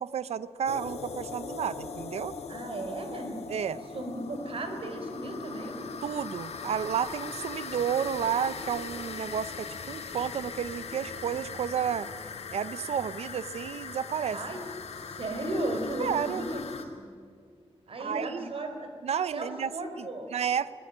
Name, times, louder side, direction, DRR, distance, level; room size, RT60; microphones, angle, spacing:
voice 1, 0.0-2.3 3.5-3.8 6.0-12.1 12.5-14.4 16.0-16.4 18.0-18.5 19.0-19.7 20.0-20.8, right 8 dB, 85° right, 16 dB, 0.7 m, -31 dB
sound 1, 0.7-16.8, left 5 dB, 85° left, 2.5 m, -40 dB
voice 2, 2.5-3.4 3.9-5.9 14.3-14.6 15.2-17.1 17.9-18.9 19.3-20.3, right 1 dB, 60° right, 5 dB, 4.3 m, -35 dB
22.5 x 21.0 x 8.8 m, 2.1 s
wide cardioid pair, 120°, 11 cm